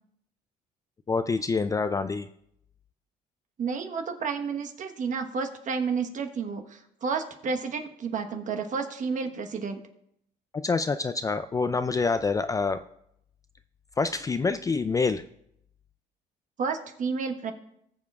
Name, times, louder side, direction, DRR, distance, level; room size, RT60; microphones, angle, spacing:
voice 1, 1.1-2.3 10.5-12.8 14.0-15.2, left 4 dB, 20° left, 11 dB, 0.3 m, -26 dB
voice 2, 3.6-9.8 16.6-17.5, right 5 dB, 50° right, 6 dB, 1.2 m, -31 dB
19.5 x 7.2 x 2.4 m, 0.73 s
cardioid pair, 110°, 17 cm